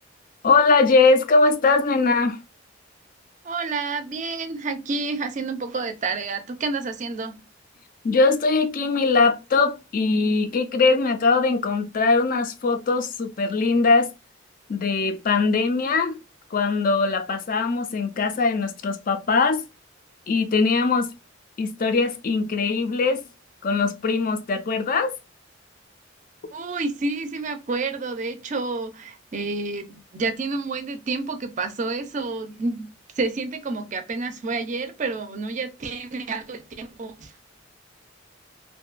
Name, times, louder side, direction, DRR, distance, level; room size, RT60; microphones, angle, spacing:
voice 1, 0.4-2.4 8.0-14.1 14.7-16.2 16.5-19.6 20.3-21.1 21.6-23.2 23.6-25.1, left 4 dB, 45° left, 0.4 m, -21 dB
voice 2, 3.4-7.4 26.5-37.3, right 3 dB, 40° right, 0.4 m, -29 dB
2.6 x 2.2 x 2.4 m
head